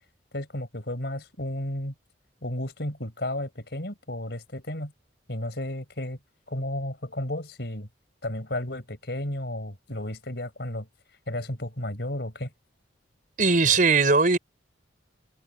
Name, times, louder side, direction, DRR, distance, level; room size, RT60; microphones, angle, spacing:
voice 1, 0.3-1.9 2.4-4.9 5.3-6.2 6.5-7.9 8.2-10.9 11.3-12.5, left 1 dB, 60° left, 5.0 m, -33 dB
voice 2, 13.4-14.4, right 4 dB, 45° right, 4.9 m, -19 dB
head